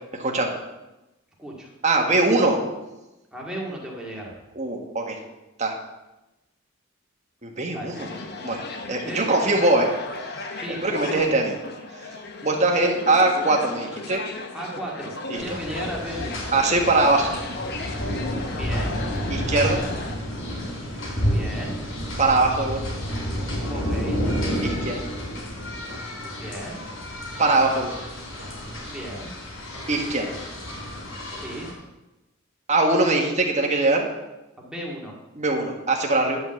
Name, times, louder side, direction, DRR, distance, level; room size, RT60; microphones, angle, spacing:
voice 1, 0.2-0.5 1.8-2.6 4.5-5.2 5.6-5.7 7.4-8.1 8.4-8.6 8.9-9.9 10.8-11.5 12.4-14.2 15.3-15.6 16.5-17.4 19.3-19.8 22.2-22.8 24.6-25.0 27.4-27.9 29.9-30.3 32.7-34.1 35.3-36.4, right 2 dB, 35° right, 1 dB, 1.6 m, -21 dB
voice 2, 1.4-1.7 3.3-4.4 7.7-7.9 9.0-9.3 10.5-11.3 14.5-16.4 18.5-18.9 21.3-21.7 23.7-24.2 26.3-26.8 28.9-29.3 31.3-31.7 34.6-35.1, right 1 dB, 5° right, -3 dB, 2.1 m, -35 dB
sound 1, 7.9-20.1, left 3 dB, 50° left, 1.2 m, -36 dB
sound 2, 15.4-31.7, equal, 70° left, 3.8 m, -30 dB
10.5 x 5.4 x 7.7 m, 1.0 s
head